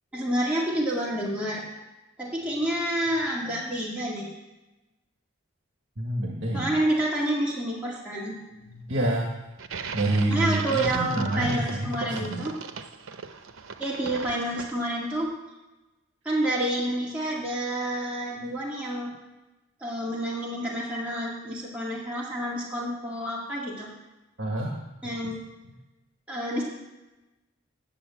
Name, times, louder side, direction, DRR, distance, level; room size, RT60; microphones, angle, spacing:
voice 1, 0.1-1.6 2.2-4.3 6.5-8.8 10.3-12.5 13.8-15.3 16.2-19.1 19.8-23.9 25.0-25.4 26.3-26.6, right 1 dB, 5° right, -7 dB, 2.2 m, -29 dB
voice 2, 6.0-6.7 8.9-9.3 9.9-12.5 24.4-24.8, right 1 dB, 60° right, 0 dB, 1.5 m, -27 dB
sound 1, 9.6-15.1, right 5 dB, 90° right, 0.7 m, -38 dB
10.0 x 7.1 x 8.3 m, 1.0 s
head